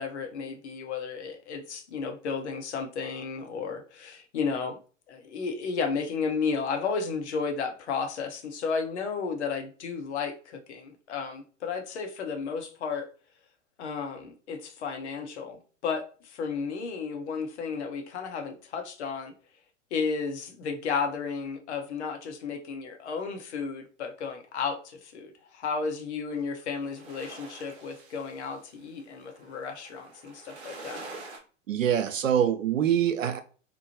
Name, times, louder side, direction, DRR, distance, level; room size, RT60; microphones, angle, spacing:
voice 1, 0.0-4.8 5.1-13.1 13.8-19.3 19.9-31.0, left 5 dB, 60° left, 0.7 m, -33 dB
sound 1, 26.3-31.4, right 3 dB, 55° right, 0.8 m, -46 dB
voice 2, 31.7-33.4, right 9 dB, 85° right, 0.5 m, -24 dB
2.9 x 2.0 x 2.7 m
figure-of-eight pair, 100°, 38 cm